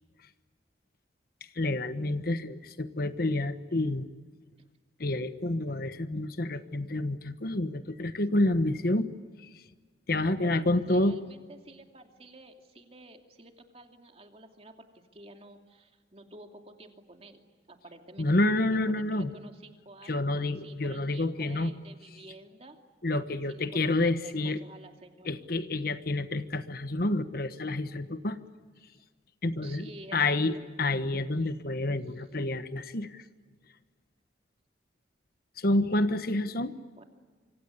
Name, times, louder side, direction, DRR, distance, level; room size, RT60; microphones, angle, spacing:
voice 1, 1.5-4.1 5.0-9.1 9.4-9.6 10.1-11.2 18.2-19.3 20.1-21.7 23.0-24.6 25.2-28.4 29.4-33.2 35.6-36.7, left 2 dB, 55° left, 11 dB, 1.2 m, -29 dB
voice 2, 10.2-22.8 23.4-25.3 28.9-29.0 29.6-30.4 36.2-36.7 36.9-37.0, right 2 dB, 35° right, 4 dB, 2.7 m, -51 dB
26.5 x 25.0 x 8.3 m, 1.5 s
head